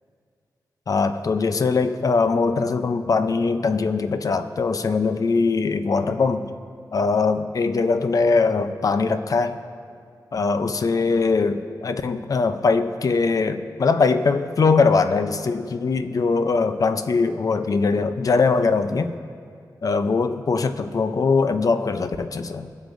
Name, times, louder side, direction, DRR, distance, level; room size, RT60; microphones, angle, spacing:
voice 1, 0.9-6.5 6.9-9.6 10.3-19.1 19.8-22.7, left 4 dB, 50° left, 10 dB, 0.6 m, -21 dB
24.0 x 8.1 x 2.6 m, 2.3 s
wide cardioid pair, 90°, 8 cm